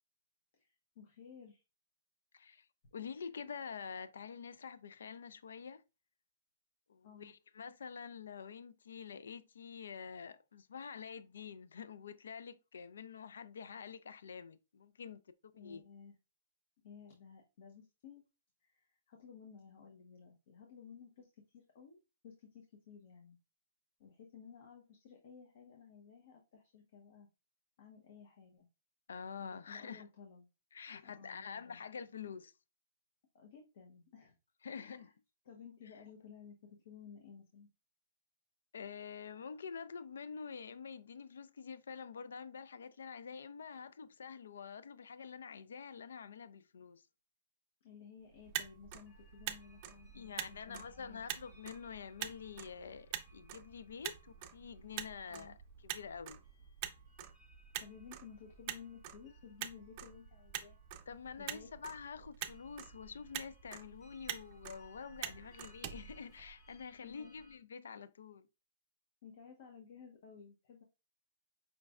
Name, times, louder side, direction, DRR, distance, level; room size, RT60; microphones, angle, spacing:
voice 1, 0.5-1.6 7.0-7.3 15.5-16.1 16.8-18.2 18.6-22.0 22.2-23.4 24.0-27.3 27.8-28.7 29.4-30.5 31.0-31.8 33.3-34.3 34.6-35.1 35.4-37.7 47.8-51.3 55.3-55.6 57.8-60.8 61.4-61.7 65.4-65.6 67.0-67.3 69.2-70.8, left 6 dB, 50° left, 0.9 m, -55 dB
voice 2, 2.3-2.7 2.9-5.8 6.9-15.2 15.6-15.8 29.1-30.0 30.7-32.5 34.6-35.1 38.7-47.1 50.1-56.4 61.1-68.5, left 6 dB, 85° left, 0.3 m, -47 dB
Motor vehicle (road), 48.3-66.9, right 11 dB, 35° right, 0.5 m, -46 dB
sound 1, 49.1-67.6, right 1 dB, 30° left, 1.3 m, -67 dB
5.1 x 3.1 x 2.4 m
hypercardioid pair, 160°, 0 cm